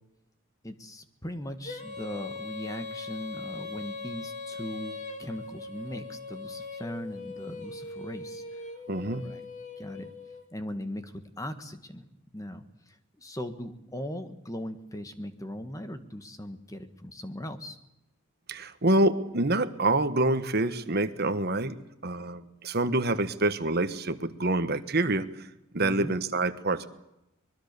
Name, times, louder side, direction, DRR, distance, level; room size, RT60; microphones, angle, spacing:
voice 1, 0.6-8.6 9.1-9.4 9.8-10.1 10.5-12.1 12.3-17.8 25.8-26.1, left 1 dB, 15° left, 8 dB, 1.6 m, -39 dB
Female singing, 1.6-10.4, left 3 dB, 35° left, 2.5 m, -40 dB
voice 2, 8.9-9.2 18.5-21.8 22.0-25.5 25.7-26.9, right 2 dB, 50° right, 11 dB, 1.3 m, -26 dB
24.0 x 21.5 x 6.9 m, 0.86 s
head